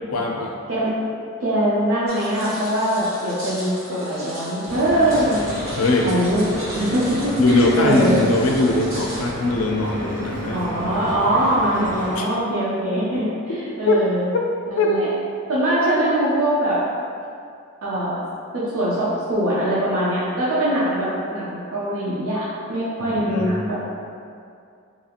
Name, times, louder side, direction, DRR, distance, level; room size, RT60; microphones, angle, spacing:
voice 1, 0.1-0.5 5.8-6.1 7.4-10.6 12.2-12.3 13.9-14.0 14.8-14.9 23.0-23.6, left 2 dB, 85° left, 0 dB, 0.4 m, -21 dB
voice 2, 1.4-5.5 6.0-7.2 7.5-8.2 10.5-13.3 13.8-14.3 14.7-15.1 15.5-16.8 17.8-18.2 18.5-22.4 22.7-23.7, right 1 dB, 75° right, -9 dB, 0.5 m, -22 dB
sound 1, 2.1-9.3, equal, 90° right, 1.5 m, -37 dB
Stream / Boat Water vehicle, 4.7-12.1, equal, 50° right, 1.5 m, -31 dB
2.7 x 2.4 x 2.8 m, 2.4 s
head